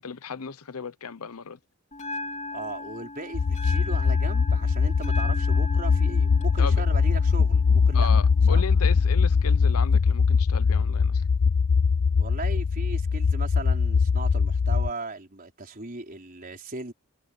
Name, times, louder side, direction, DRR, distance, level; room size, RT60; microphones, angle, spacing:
voice 1, 0.0-1.6 6.6-6.8 7.9-11.3, left 5 dB, 80° left, 0.9 m, -35 dB
Bell, 1.9-9.9, left 1 dB, 30° left, 3.0 m, -39 dB
voice 2, 2.5-8.1 8.5-8.6 12.2-16.9, right 2 dB, 40° right, 4.7 m, -37 dB
sound 1, 3.3-14.9, left 5 dB, 60° left, 0.5 m, -22 dB
head